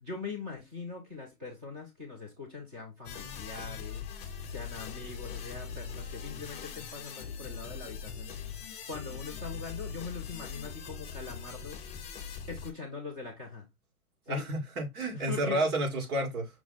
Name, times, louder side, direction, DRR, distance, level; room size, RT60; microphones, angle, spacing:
voice 1, 0.0-8.3 8.9-11.8 12.5-13.7 14.3-14.5 15.2-15.7, left 4 dB, 5° right, 0.3 m, -42 dB
sound 1, 3.0-12.7, left 6 dB, 15° left, 0.7 m, -41 dB
voice 2, 14.3-16.5, right 1 dB, 75° right, 2.4 m, -30 dB
5.8 x 2.2 x 4.0 m
hypercardioid pair, 150°, 44 cm